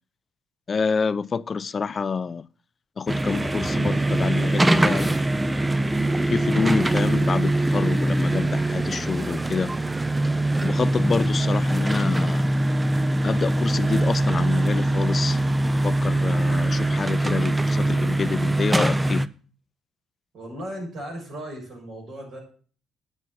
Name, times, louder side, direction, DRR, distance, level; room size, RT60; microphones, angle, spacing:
voice 1, 0.7-2.4 3.0-5.1 6.3-9.7 10.6-12.5 13.2-15.4 15.8-19.3, left 5 dB, 45° left, 0.5 m, -27 dB
sound 1, 3.1-19.3, right 1 dB, 15° right, 0.6 m, -22 dB
voice 2, 20.3-22.4, right 1 dB, 65° right, 7.1 m, -36 dB
9.3 x 6.3 x 7.8 m
supercardioid pair, 60°, 0 cm